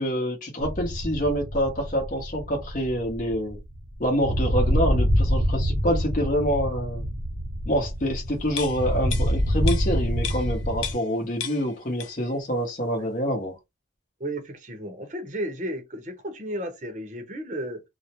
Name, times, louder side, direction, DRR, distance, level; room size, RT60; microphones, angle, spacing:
voice 1, 0.0-3.6 4.0-7.0 7.7-13.6, equal, 45° left, 0.8 m, -26 dB
sound 1, 0.6-10.9, equal, 75° right, 0.8 m, -26 dB
sound 2, 8.5-11.1 11.4-12.4 12.7-12.8, left 8 dB, 80° left, 0.4 m, -35 dB
voice 2, 14.2-17.8, right 1 dB, 40° right, 0.7 m, -33 dB
2.4 x 2.1 x 2.8 m
head